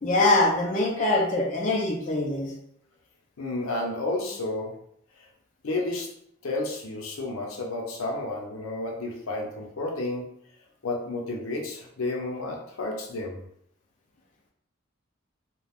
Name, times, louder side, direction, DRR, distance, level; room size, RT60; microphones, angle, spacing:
voice 1, 0.0-2.5, left 2 dB, 40° left, -3 dB, 0.5 m, -23 dB
voice 2, 3.4-4.7 5.6-6.1 6.4-10.2 10.8-13.4, left 2 dB, 85° left, 0 dB, 0.7 m, -31 dB
2.4 x 2.3 x 3.4 m, 0.69 s
head